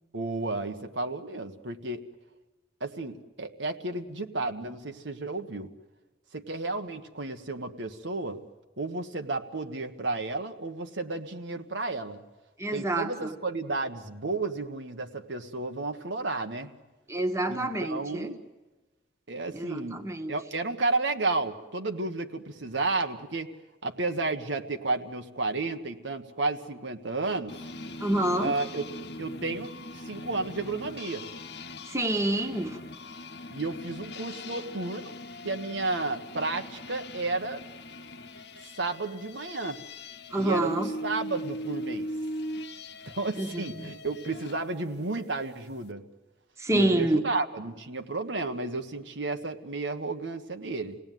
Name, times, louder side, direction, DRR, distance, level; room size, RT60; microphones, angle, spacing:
voice 1, 0.1-2.0 2.8-5.7 6.3-8.4 8.8-12.2 12.7-16.7 17.5-18.4 19.3-20.0 20.3-23.5 23.8-27.6 28.4-28.9 29.2-31.3 33.5-35.1 35.4-37.6 38.8-39.8 40.4-42.1 43.1-46.0 46.7-51.0, right 3 dB, 85° right, 5 dB, 1.5 m, -32 dB
voice 2, 12.6-13.3 17.1-18.3 19.5-20.3 28.0-28.5 31.9-32.8 40.3-40.9 43.4-43.6 46.6-47.2, right 1 dB, 15° right, 4 dB, 1.5 m, -27 dB
sound 1, 27.5-44.6, left 1 dB, 65° left, 1.1 m, -40 dB
28.0 x 18.0 x 9.3 m, 1.2 s
head